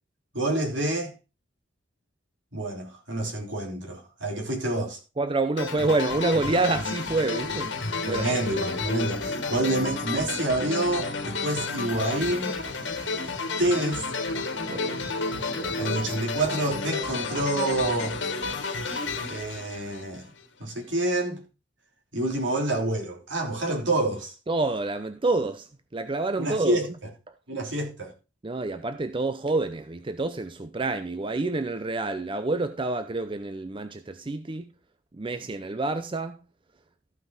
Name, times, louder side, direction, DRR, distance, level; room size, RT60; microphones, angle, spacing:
voice 1, 0.3-1.1 2.5-5.0 8.1-12.6 13.6-14.1 15.8-18.2 19.2-20.2 20.6-21.4 22.1-24.3 26.4-26.9 27.5-28.1, right 1 dB, 70° right, 3.1 m, -28 dB
voice 2, 5.2-8.4 14.7-15.0 15.5-15.9 24.5-26.8 27.3-27.4 28.4-34.7 35.1-36.4, right 3 dB, 25° right, 0.5 m, -28 dB
sound 1, 5.6-20.4, left 3 dB, 70° left, 1.6 m, -31 dB
14.0 x 5.8 x 3.9 m
head